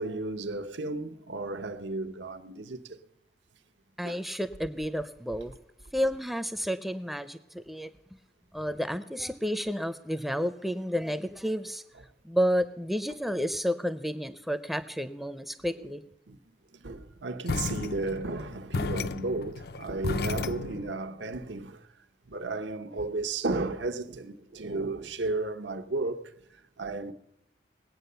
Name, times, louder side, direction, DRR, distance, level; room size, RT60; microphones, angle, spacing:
voice 1, 0.0-3.0 4.0-4.2 16.3-16.4 16.7-21.9 22.2-27.1, right 3 dB, 90° right, 1.0 m, -34 dB
voice 2, 4.0-5.5 5.9-7.9 8.5-11.8 12.2-16.0, equal, ahead, 0.5 m, -31 dB
sound 1, 17.5-21.0, left 3 dB, 55° left, 0.5 m, -33 dB
19.5 x 8.6 x 6.8 m
head